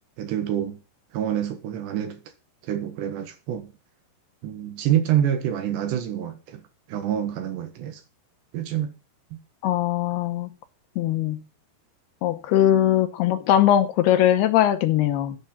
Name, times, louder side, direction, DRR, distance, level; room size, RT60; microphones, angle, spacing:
voice 1, 0.2-0.8 1.1-2.2 2.7-3.7 4.4-6.6 6.9-8.0 8.5-8.9 9.3-9.4, right 10 dB, 70° right, 3.5 m, -26 dB
voice 2, 9.6-10.5 11.0-11.4 12.2-15.4, left 11 dB, 80° left, 2.4 m, -20 dB
15.0 x 8.5 x 5.7 m
omnidirectional pair, 5.6 m